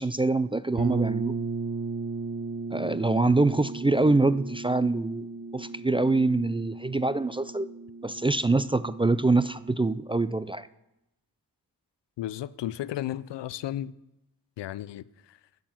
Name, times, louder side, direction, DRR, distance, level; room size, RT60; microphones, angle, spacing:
voice 1, 0.0-1.4 2.7-5.3 5.5-7.7 8.0-10.7, right 2 dB, 15° right, 0.3 m, -25 dB
sound 1, 0.8-10.4, right 4 dB, 50° right, 1.0 m, -36 dB
voice 2, 12.2-13.9 14.6-15.4, left 12 dB, 85° left, 0.5 m, -34 dB
9.6 x 7.0 x 7.4 m
cardioid pair, 55°, 41 cm